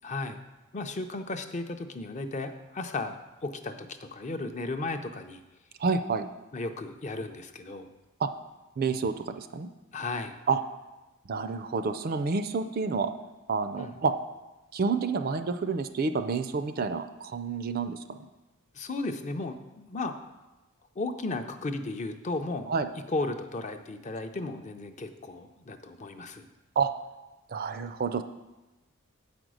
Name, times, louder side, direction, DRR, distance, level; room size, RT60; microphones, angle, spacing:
voice 1, 0.0-0.4 0.7-5.4 6.5-7.9 9.9-10.4 13.8-13.9 18.7-20.1 21.0-22.7 23.1-26.5, left 2 dB, 30° left, 7 dB, 0.5 m, -35 dB
voice 2, 5.8-6.3 8.2-8.3 8.8-9.7 10.5-10.6 11.3-13.1 13.5-14.1 14.7-18.2 22.7-22.9 26.8-26.9 27.5-28.2, right 4 dB, 40° right, 9 dB, 0.4 m, -29 dB
8.4 x 5.1 x 6.2 m, 1.1 s
head